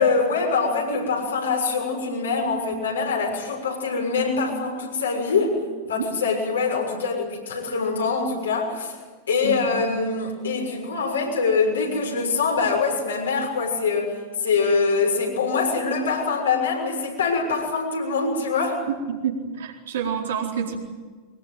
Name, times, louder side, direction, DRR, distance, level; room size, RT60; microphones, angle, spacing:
voice 1, 0.0-5.6 5.9-9.0 9.3-18.8, left 4 dB, 70° left, 0 dB, 6.5 m, -24 dB
voice 2, 18.9-20.8, right 7 dB, 60° right, 0 dB, 4.4 m, -28 dB
23.5 x 21.0 x 9.2 m, 1.4 s
figure-of-eight pair, 90°, 0 cm